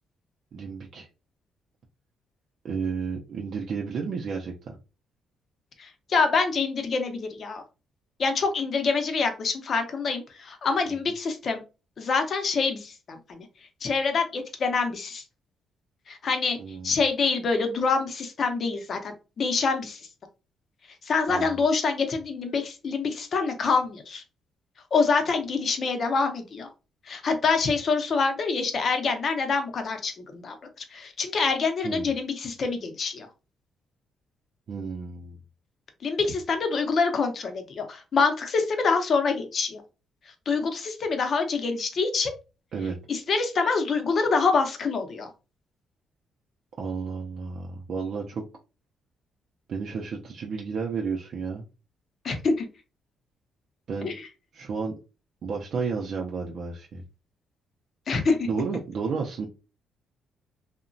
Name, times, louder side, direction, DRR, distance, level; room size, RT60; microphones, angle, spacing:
voice 1, 0.5-1.1 2.6-4.8 10.9-11.0 16.6-16.9 21.3-21.6 31.8-32.1 34.7-35.4 42.7-43.0 46.8-48.4 49.7-51.6 53.9-54.1 54.5-54.9 55.4-57.0 58.5-59.5, right 5 dB, 60° right, 0 dB, 0.4 m, -32 dB
voice 2, 5.8-7.6 8.2-11.6 12.0-13.5 13.8-15.2 16.1-16.6 16.8-20.0 21.0-24.2 24.9-26.7 27.1-30.6 30.9-33.3 36.0-39.8 40.5-42.3 43.1-45.3 52.2-52.7 54.0-54.1 58.1-58.5, left 4 dB, 50° left, 6 dB, 0.6 m, -26 dB
2.8 x 2.1 x 2.5 m, 0.30 s
cardioid pair, 90°, 0 cm